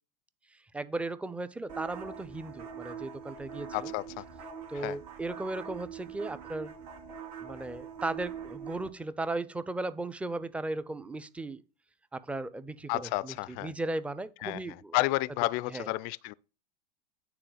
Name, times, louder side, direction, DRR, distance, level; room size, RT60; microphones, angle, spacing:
voice 1, 0.7-3.9 4.7-6.7 7.4-11.6 12.1-15.0 15.7-15.9, right 2 dB, 5° right, 0.5 m, -36 dB
sound 1, 1.7-8.9, right 7 dB, 65° right, 2.0 m, -43 dB
voice 2, 3.7-4.2 4.7-5.0 12.9-13.7 14.4-16.3, left 20 dB, 45° left, 0.4 m, -31 dB
9.0 x 3.9 x 6.3 m
hypercardioid pair, 100°, 21 cm